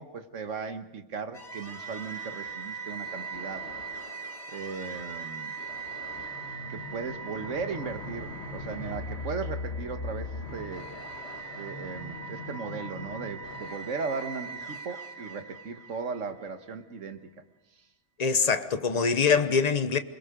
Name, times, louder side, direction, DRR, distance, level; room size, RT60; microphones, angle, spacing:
voice 1, 0.0-3.7 4.5-5.6 6.7-10.9 11.6-17.3, right 5 dB, 85° right, 1.7 m, -37 dB
sound 1, 1.3-16.5, right 2 dB, 60° left, 1.8 m, -39 dB
voice 2, 18.2-20.0, left 5 dB, 35° left, 1.1 m, -24 dB
28.0 x 22.0 x 5.1 m
omnidirectional pair, 1.3 m